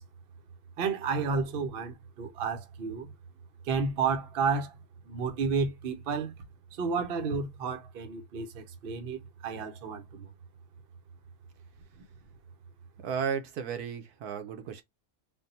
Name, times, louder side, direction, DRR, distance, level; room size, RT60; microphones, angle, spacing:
voice 1, 0.8-3.1 3.6-4.8 5.1-6.3 6.7-10.3, right 5 dB, 50° right, 0.8 m, -31 dB
voice 2, 13.0-14.8, right 7 dB, 80° right, 1.3 m, -34 dB
3.6 x 2.2 x 4.0 m
omnidirectional pair, 1.6 m